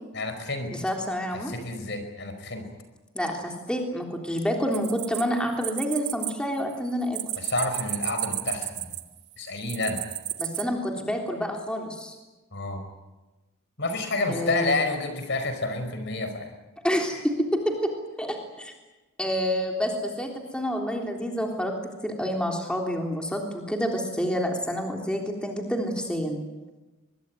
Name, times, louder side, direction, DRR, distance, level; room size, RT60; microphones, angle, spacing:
voice 1, 0.1-0.8 1.3-2.7 7.3-8.9 9.4-10.1 12.5-12.9 13.8-16.6, left 2 dB, 55° left, 8 dB, 4.8 m, -29 dB
voice 2, 0.8-1.5 3.2-7.2 10.4-12.2 14.3-14.7 16.8-17.9 18.2-18.7 19.2-21.8 22.0-26.4, equal, 5° left, 1 dB, 3.5 m, -28 dB
sound 1, 4.7-6.3 6.6-9.2 9.7-10.6, right 14 dB, 55° right, 1.4 m, -32 dB
23.5 x 22.5 x 9.6 m, 1.1 s
head